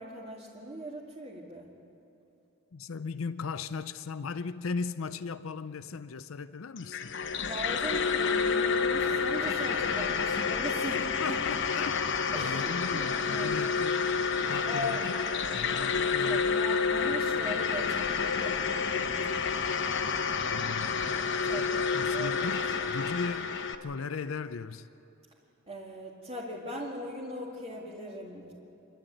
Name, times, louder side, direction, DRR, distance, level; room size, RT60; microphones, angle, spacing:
voice 1, 0.0-1.7 7.3-11.4 12.3-13.6 14.6-15.1 16.2-19.5 21.4-22.8 25.7-28.5, equal, 30° right, 2.2 m, -40 dB
voice 2, 2.7-7.1 10.9-12.0 12.3-14.2 14.5-15.2 15.5-16.4 20.4-21.1 21.9-24.9, left 4 dB, 85° left, 0.6 m, -37 dB
sound 1, 6.8-23.8, left 5 dB, 65° left, 1.0 m, -29 dB
28.5 x 12.0 x 9.1 m
head